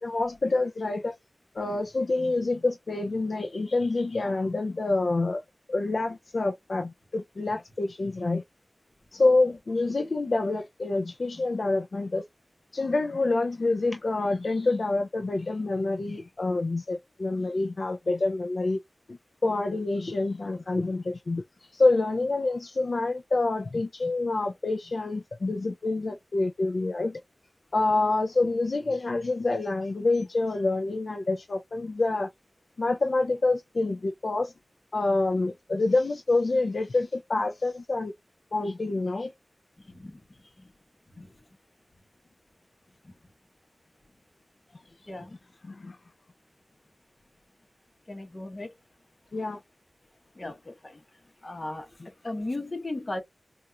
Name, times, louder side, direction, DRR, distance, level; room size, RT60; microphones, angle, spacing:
voice 1, 0.0-1.2 1.5-5.4 5.7-8.4 9.1-12.2 12.7-18.8 19.1-27.2 27.7-32.3 32.8-34.5 34.9-38.1 38.5-39.3 45.6-46.0 49.3-49.6 50.4-50.5 52.0-52.1, left 2 dB, 65° left, 0.4 m, -27 dB
voice 2, 48.1-48.7 50.4-51.0 51.4-51.9 52.2-53.2, left 2 dB, 40° left, 1.0 m, -35 dB
4.2 x 2.4 x 2.3 m
wide cardioid pair, 90°, 0 cm